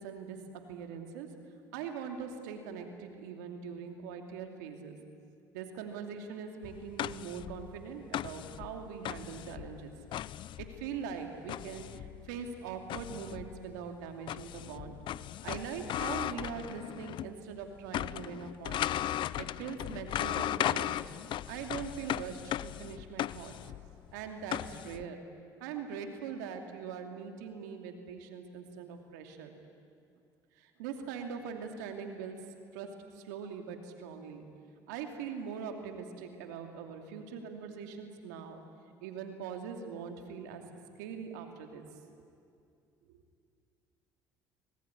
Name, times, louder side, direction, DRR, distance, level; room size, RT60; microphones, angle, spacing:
voice 1, 0.0-1.3 1.7-5.0 5.5-9.9 10.6-15.0 15.4-18.9 19.4-21.0 21.5-23.7 24.1-25.2 25.6-29.6 30.5-32.4 32.7-34.5 34.9-38.6 39.0-40.7 41.0-41.9 43.1-43.2, right 6 dB, 90° right, 4 dB, 2.7 m, -42 dB
sound 1, 6.6-17.4 17.6-25.0, left 12 dB, 60° left, 0.5 m, -37 dB
25.5 x 19.5 x 9.9 m, 2.4 s
supercardioid pair, 75°, 9 cm